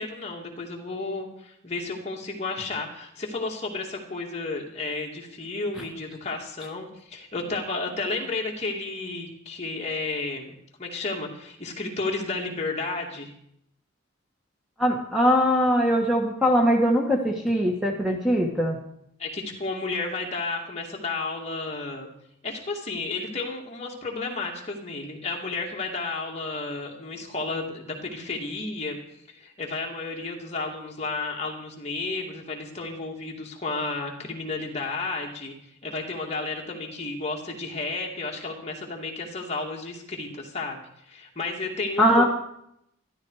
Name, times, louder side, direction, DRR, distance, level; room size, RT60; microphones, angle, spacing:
voice 1, 0.0-13.3 19.2-22.1 22.4-29.0 29.3-35.5 35.8-42.2, left 3 dB, 30° left, -1 dB, 2.2 m, -32 dB
voice 2, 14.8-18.8 42.0-42.2, equal, ahead, 0 dB, 1.3 m, -21 dB
13.0 x 12.5 x 4.8 m, 0.74 s
head